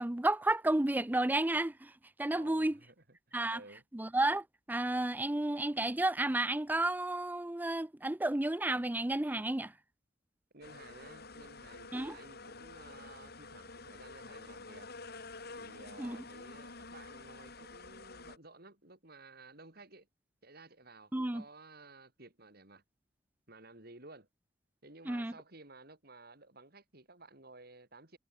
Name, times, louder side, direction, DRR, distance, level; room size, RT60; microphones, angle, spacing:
voice 1, 0.0-1.9 2.2-2.8 3.3-3.6 3.9-9.7 11.9-12.1 16.0-16.2 21.1-21.4 25.1-25.3, right 2 dB, 10° right, 0.5 m, -32 dB
voice 2, 2.3-3.8 10.5-14.9 15.6-20.1 20.4-22.8 23.5-24.3 24.8-28.2, right 3 dB, 55° right, 5.0 m, -55 dB
sound 1, 10.6-18.4, left 3 dB, 55° left, 3.9 m, -49 dB
head